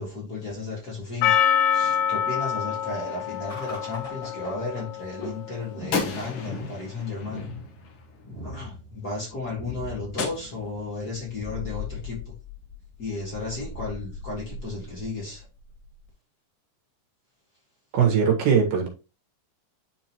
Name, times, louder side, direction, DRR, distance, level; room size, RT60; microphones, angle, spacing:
voice 1, 0.0-1.3 1.7-7.4 8.4-12.2 13.0-15.5, left 3 dB, 35° left, 1.9 m, -34 dB
Percussion, 1.2-5.8, left 9 dB, 90° left, 2.5 m, -26 dB
Gunshot gunfire, 2.9-4.0 5.9-8.3 10.2-11.2, left 5 dB, 55° left, 1.6 m, -35 dB
sound 1, 3.5-16.1, left 3 dB, 20° left, 1.1 m, -40 dB
voice 2, 17.9-18.9, right 7 dB, 75° right, 3.2 m, -20 dB
10.5 x 4.0 x 3.0 m
omnidirectional pair, 3.8 m